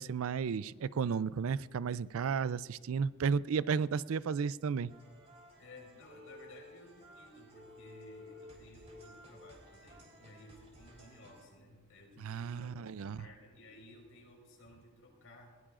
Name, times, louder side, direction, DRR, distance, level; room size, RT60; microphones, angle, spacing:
voice 1, 0.0-4.9 12.2-13.2, right 6 dB, 90° right, 18 dB, 0.4 m, -33 dB
sound 1, 4.9-11.5, left 1 dB, 30° right, 3.4 m, -55 dB
voice 2, 5.6-15.6, left 1 dB, 80° left, 0 dB, 4.6 m, -56 dB
20.5 x 18.0 x 2.5 m, 1.4 s
head